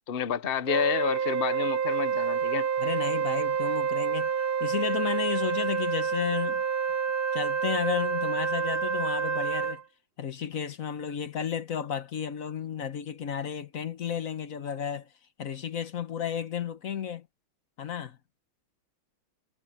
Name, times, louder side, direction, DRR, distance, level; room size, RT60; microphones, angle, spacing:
voice 1, 0.1-2.7, left 8 dB, 60° left, 0.5 m, -29 dB
Wind instrument woodwind instrument, 0.7-9.8, right 7 dB, 65° right, 0.5 m, -28 dB
voice 2, 2.8-4.3 4.6-6.6 7.3-9.8 10.2-15.1 15.4-17.3 17.8-18.2, left 8 dB, 45° left, 1.4 m, -32 dB
omnidirectional pair, 2.3 m